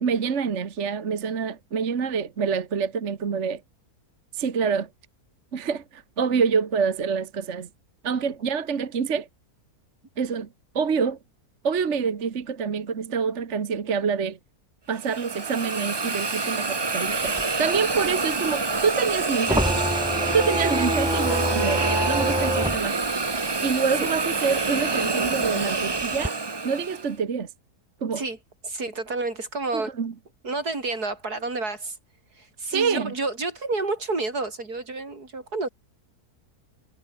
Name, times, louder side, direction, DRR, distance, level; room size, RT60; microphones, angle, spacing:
voice 1, 0.0-3.6 4.3-4.9 5.5-7.7 8.0-9.3 10.2-10.5 10.8-11.2 11.6-14.4 14.9-19.8 20.3-23.0 23.6-26.4 26.6-27.5 28.0-28.2 29.7-30.1 32.7-33.1, right 6 dB, 50° right, 1.6 m, -26 dB
Hiss, 15.0-27.1, right 3 dB, 25° right, 0.7 m, -27 dB
sound 1, 17.2-24.2 24.5-26.3, equal, 5° right, 5.3 m, -27 dB
voice 2, 28.6-29.9 30.4-32.0 32.4-35.7, right 3 dB, 80° right, 4.9 m, -30 dB
omnidirectional pair, 1.6 m